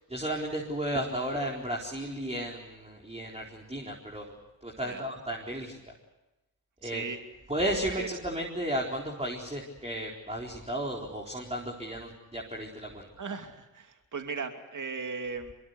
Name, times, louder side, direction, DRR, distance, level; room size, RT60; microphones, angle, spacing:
voice 1, 0.1-4.3 4.6-5.8 6.8-7.0 7.5-13.1, right 1 dB, 15° right, -1 dB, 4.3 m, -34 dB
voice 2, 6.8-7.2 8.0-8.1 13.2-15.5, right 5 dB, 45° right, 6 dB, 2.8 m, -37 dB
23.5 x 22.0 x 8.2 m, 1.0 s
hypercardioid pair, 45°, 45 cm